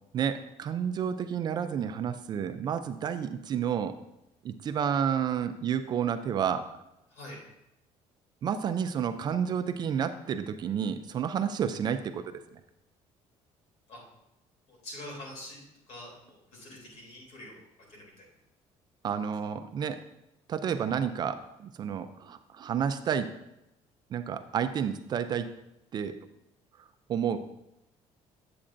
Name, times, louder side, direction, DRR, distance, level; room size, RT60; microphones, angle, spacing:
voice 1, 0.1-4.0 4.4-6.7 8.4-12.3 19.0-20.0 20.5-23.3 24.1-25.5 25.9-26.1 27.1-27.4, right 8 dB, 35° right, 9 dB, 0.3 m, -30 dB
voice 2, 14.7-15.6 15.9-17.6 17.9-18.3 19.1-19.2, left 1 dB, 65° left, -2 dB, 3.0 m, -45 dB
8.5 x 7.7 x 2.5 m, 0.87 s
cardioid pair, 170°, 12 cm